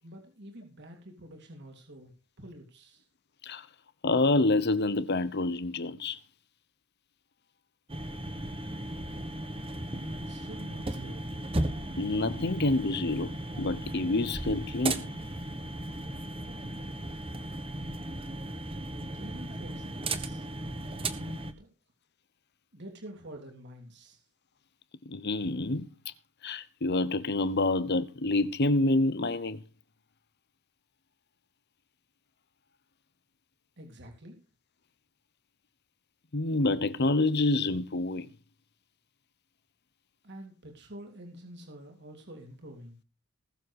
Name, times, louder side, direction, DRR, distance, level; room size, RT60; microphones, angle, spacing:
voice 1, 0.0-2.1 2.4-3.0 9.9-11.3 19.1-20.5 21.1-21.7 22.7-24.2 33.8-34.4 40.2-43.0, equal, 50° right, 3.3 m, -47 dB
voice 2, 4.0-6.2 12.0-13.3 13.6-15.1 25.1-25.9 26.4-29.6 36.3-38.3, left 2 dB, 50° left, 0.9 m, -27 dB
sound 1, 7.9-21.5, right 1 dB, 25° right, 1.4 m, -36 dB
19.5 x 7.5 x 4.8 m
head